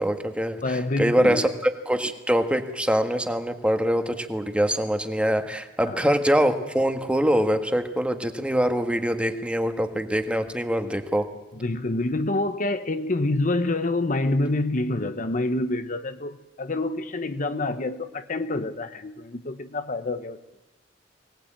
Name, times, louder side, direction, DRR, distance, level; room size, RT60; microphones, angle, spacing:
voice 1, 0.0-11.3, equal, 5° right, 7 dB, 1.5 m, -24 dB
voice 2, 0.6-1.5 5.9-6.0 11.6-20.4, left 2 dB, 45° left, 10 dB, 0.9 m, -27 dB
23.5 x 18.0 x 8.9 m, 1.1 s
head